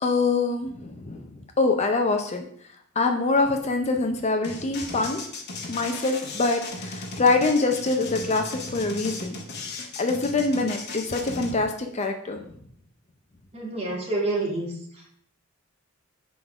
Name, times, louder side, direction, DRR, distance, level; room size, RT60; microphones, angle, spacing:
voice 1, 0.0-2.4 3.0-5.2 5.7-9.4 10.0-12.4, left 3 dB, 35° left, 4 dB, 0.5 m, -24 dB
sound 1, 4.4-11.5, left 3 dB, 55° left, 1.1 m, -36 dB
voice 2, 13.5-15.1, right 2 dB, 30° right, -2 dB, 1.8 m, -28 dB
6.1 x 3.7 x 5.8 m, 0.66 s
head